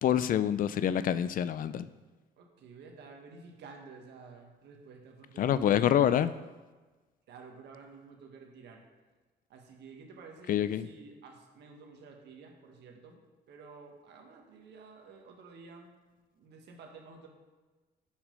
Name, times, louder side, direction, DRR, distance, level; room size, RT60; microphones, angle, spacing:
voice 1, 0.0-1.9 5.4-6.3 10.5-10.9, left 10 dB, 50° left, 14 dB, 0.4 m, -26 dB
voice 2, 2.4-6.2 7.3-8.8 9.5-13.2 13.5-16.0 16.3-17.3, right 4 dB, 75° right, 2 dB, 1.5 m, -51 dB
6.6 x 6.2 x 5.2 m, 1.3 s
cardioid pair, 110°, 18 cm